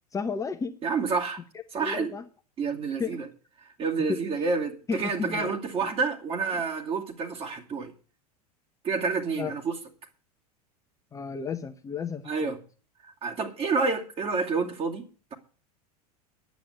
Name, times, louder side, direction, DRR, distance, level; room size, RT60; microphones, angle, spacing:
voice 1, 0.1-0.8 1.8-2.2 3.0-3.2 4.1-4.2 4.9-5.8 9.4-9.5 11.1-12.5, left 5 dB, 15° left, 0.9 m, -33 dB
voice 2, 0.8-1.4 1.7-2.1 2.6-3.3 3.8-7.9 8.8-9.7 12.2-12.6 13.0-15.3, right 4 dB, 30° right, 2.5 m, -29 dB
10.5 x 8.9 x 8.2 m
figure-of-eight pair, 85°, 20 cm